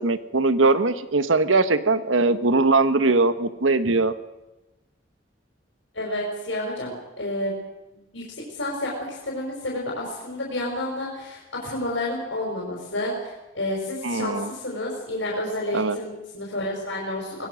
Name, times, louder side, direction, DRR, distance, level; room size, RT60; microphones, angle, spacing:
voice 1, 0.0-4.1 14.0-14.5 15.7-16.0, right 3 dB, 85° right, 11 dB, 1.3 m, -21 dB
voice 2, 5.9-7.5 7.9-8.2 8.5-17.5, left 1 dB, 75° left, -2 dB, 5.5 m, -30 dB
23.5 x 20.0 x 6.5 m, 1.0 s
head